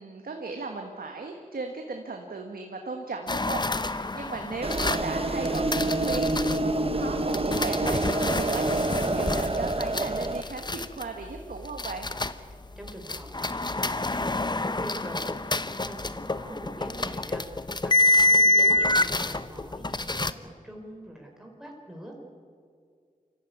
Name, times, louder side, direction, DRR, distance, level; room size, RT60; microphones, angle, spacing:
voice 1, 0.0-12.1, right 3 dB, 90° right, 3 dB, 1.6 m, -36 dB
sound 1, 3.3-6.6 7.3-12.5 12.8-20.3, left 2 dB, 30° left, 0.8 m, -27 dB
sound 2, 4.6-10.4, right 2 dB, 40° right, 1.3 m, -27 dB
voice 2, 12.7-22.2, right 1 dB, 5° right, -1 dB, 4.6 m, -43 dB
25.0 x 14.5 x 9.5 m, 2.2 s
cardioid pair, 50°, 15 cm